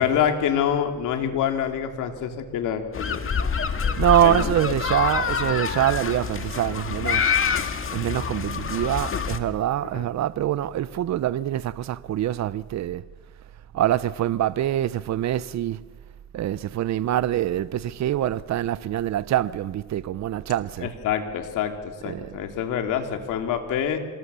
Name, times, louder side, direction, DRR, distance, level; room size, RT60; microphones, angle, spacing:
voice 1, 0.0-3.3 4.2-4.5 9.9-10.1 20.8-24.0, left 9 dB, 90° left, 2.9 m, -26 dB
sound 1, 2.9-9.4, left 6 dB, 45° left, 2.0 m, -26 dB
voice 2, 4.0-7.3 7.9-13.0 13.7-15.8 16.3-20.9 22.1-22.3, right 12 dB, 65° right, 0.8 m, -24 dB
27.0 x 20.5 x 7.0 m
cardioid pair, 90°, 30 cm